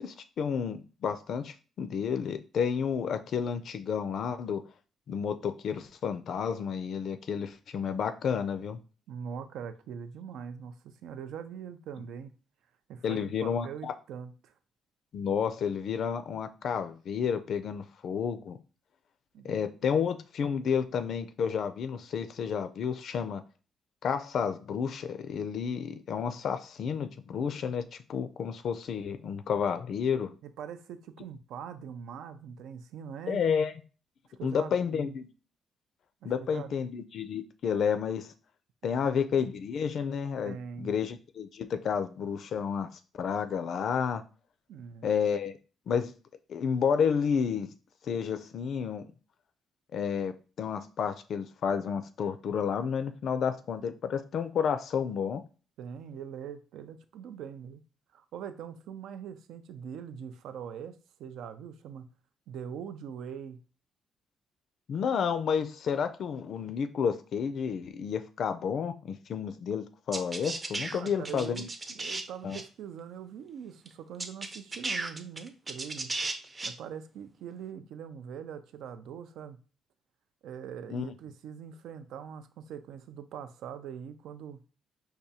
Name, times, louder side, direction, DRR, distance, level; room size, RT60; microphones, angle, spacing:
voice 1, 0.0-4.6 5.1-8.8 13.0-13.9 15.1-18.6 19.4-23.4 24.0-27.8 28.1-30.3 33.3-33.7 34.4-35.3 36.2-38.3 38.8-42.9 43.2-44.2 45.0-45.6 45.9-46.1 46.5-47.7 48.1-49.1 49.9-55.4 64.9-71.7 72.4-72.6 80.9-81.1, left 7 dB, 65° left, 0.4 m, -31 dB
voice 2, 9.1-12.3 12.9-14.5 19.3-19.6 30.4-33.4 34.4-35.2 36.2-36.7 38.9-39.1 40.5-40.9 44.7-45.1 55.8-57.8 58.1-62.1 62.5-63.6 70.9-71.7 71.9-76.2 76.6-79.6 80.4-84.6, right 8 dB, 85° right, 0.4 m, -42 dB
sound 1, 70.1-72.2 72.5-72.6 73.9-74.0 74.2-76.7, right 3 dB, 25° right, 0.6 m, -35 dB
4.8 x 2.3 x 2.7 m
cardioid pair, 90°, 0 cm